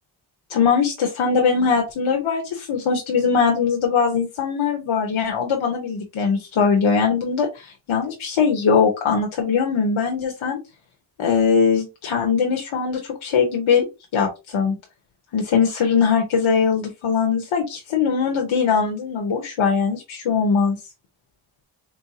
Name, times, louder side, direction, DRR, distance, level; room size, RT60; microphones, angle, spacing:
voice 1, 0.5-10.6 11.2-13.9 14.1-14.8 15.3-20.8, left 6 dB, 90° left, 2 dB, 1.0 m, -21 dB
4.5 x 2.8 x 2.7 m, 0.26 s
cardioid pair, 75°, 47 cm